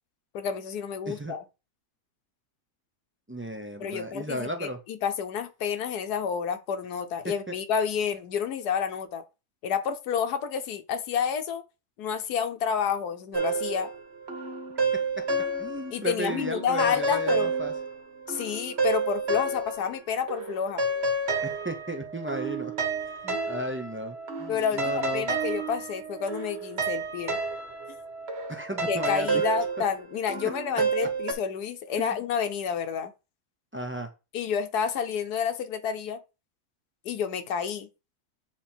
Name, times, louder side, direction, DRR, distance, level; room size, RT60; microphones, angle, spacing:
voice 1, 0.3-1.4 3.8-9.2 9.6-11.6 12.0-13.9 15.9-17.5 18.3-20.8 24.5-27.4 28.9-33.1 34.3-36.2 37.0-37.9, left 7 dB, 85° left, 1.3 m, -29 dB
voice 2, 3.3-4.8 7.5-7.6 15.6-17.7 21.4-22.7 23.2-25.3 28.5-29.3 32.0-32.2 33.7-34.1, right 1 dB, 20° right, 0.3 m, -34 dB
sound 1, 13.3-16.0 16.3-20.0 20.3-31.3, right 3 dB, 45° right, 1.3 m, -30 dB
7.3 x 3.5 x 4.4 m
omnidirectional pair, 1.6 m